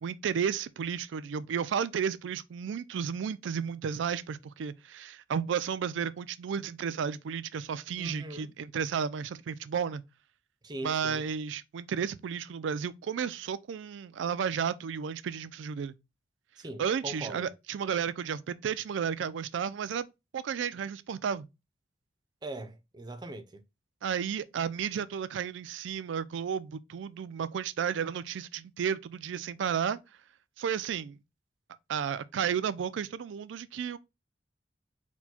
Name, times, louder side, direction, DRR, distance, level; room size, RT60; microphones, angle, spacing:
voice 1, 0.0-10.0 10.8-15.9 16.8-20.1 20.3-21.5 24.0-30.0 30.6-31.2 31.9-34.0, right 7 dB, 90° right, 0.4 m, -33 dB
voice 2, 8.0-8.5 10.6-11.2 16.6-17.5 22.4-23.6, right 1 dB, 25° right, 0.5 m, -41 dB
4.4 x 2.2 x 4.1 m
head